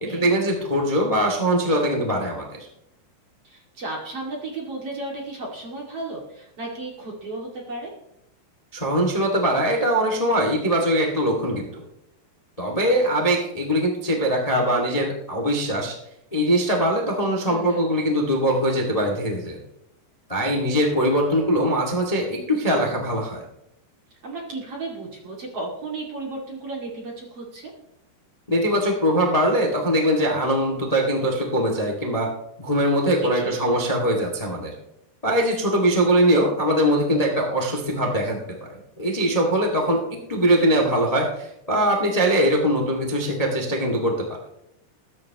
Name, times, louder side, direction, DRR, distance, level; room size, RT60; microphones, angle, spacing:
voice 1, 0.0-2.5 8.7-11.8 12.6-15.9 16.3-19.6 20.3-23.4 28.5-32.3 32.6-34.7 35.2-38.7 39.0-44.1, equal, 25° left, 1 dB, 0.8 m, -22 dB
voice 2, 3.4-7.9 17.5-17.9 24.2-27.7 33.2-33.6, right 2 dB, 40° right, -2 dB, 2.8 m, -34 dB
21.0 x 10.5 x 3.0 m, 0.83 s
omnidirectional pair, 4.6 m